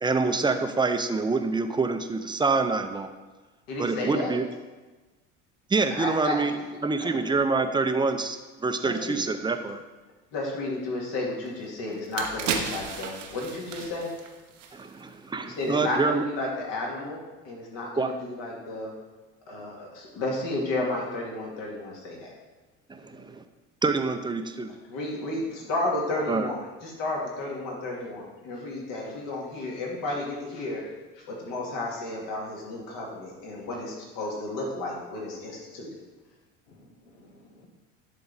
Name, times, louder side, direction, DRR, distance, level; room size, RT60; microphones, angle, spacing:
voice 1, 0.0-3.1 3.8-4.4 5.7-9.8 14.7-16.3 18.0-18.1 22.9-23.4 23.8-24.7 26.3-26.5, right 4 dB, 10° right, 0.6 m, -26 dB
voice 2, 3.7-4.3 6.0-6.6 7.0-7.1 8.8-9.4 10.3-14.1 15.4-18.9 19.5-22.3 24.9-30.8 31.2-35.9, left 2 dB, 60° left, 2.3 m, -32 dB
sound 1, 11.5-11.6 11.9-15.2 15.5-15.7, right 6 dB, 85° right, 1.0 m, -34 dB
voice 3, 22.9-23.4 25.3-25.7 35.7-35.8 36.7-37.7, left 1 dB, 80° left, 1.3 m, -56 dB
11.0 x 3.8 x 4.0 m
hypercardioid pair, 70°, 36 cm